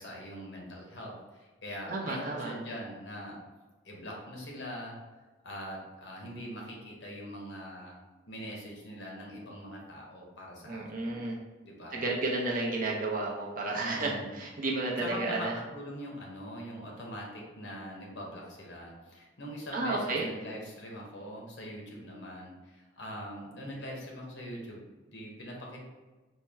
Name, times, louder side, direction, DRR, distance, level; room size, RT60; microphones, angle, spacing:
voice 1, 0.0-3.4 3.8-5.0 5.4-8.0 8.3-11.2 11.6-12.1 13.8-14.4 15.0-25.8, equal, 70° left, -2 dB, 0.9 m, -42 dB
voice 2, 1.9-2.5 10.6-11.4 11.9-15.5 19.7-20.3, right 2 dB, 45° right, -2 dB, 0.7 m, -32 dB
4.3 x 2.1 x 3.5 m, 1.2 s
head